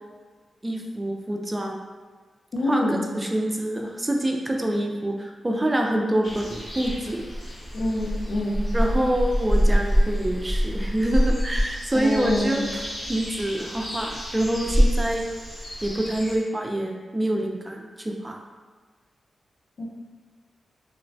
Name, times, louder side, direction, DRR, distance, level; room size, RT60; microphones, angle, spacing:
voice 1, 0.6-1.8 2.6-7.2 8.7-12.8 13.1-15.3 15.8-18.4, right 1 dB, 20° right, 1 dB, 0.3 m, -26 dB
voice 2, 2.5-3.0 7.7-8.6 11.9-12.7 19.8-19.9, left 1 dB, 70° left, -2 dB, 0.5 m, -26 dB
sound 1, 6.2-16.4, equal, 35° left, 1.0 m, -26 dB
3.0 x 2.0 x 2.6 m, 1.5 s
cardioid pair, 75°, 0 cm